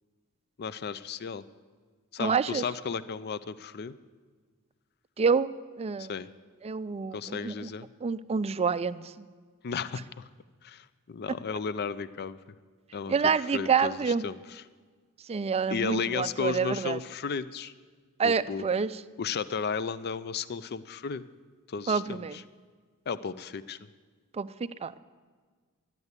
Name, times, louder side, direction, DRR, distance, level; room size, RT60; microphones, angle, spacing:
voice 1, 0.6-1.4 2.1-3.9 6.0-6.3 7.1-7.9 9.6-10.3 10.6-12.4 12.9-14.6 15.7-17.7 18.2-18.6 19.2-21.2 21.7-22.4 23.1-23.8, left 5 dB, 45° left, 15 dB, 0.5 m, -34 dB
voice 2, 2.2-2.6 5.2-5.5 5.8-6.1 6.6-7.7 8.0-9.3 13.1-14.3 15.3-17.0 18.2-18.9 21.9-22.4 24.3-25.0, right 5 dB, 25° right, 15 dB, 0.4 m, -27 dB
12.5 x 10.5 x 8.1 m, 1.5 s
head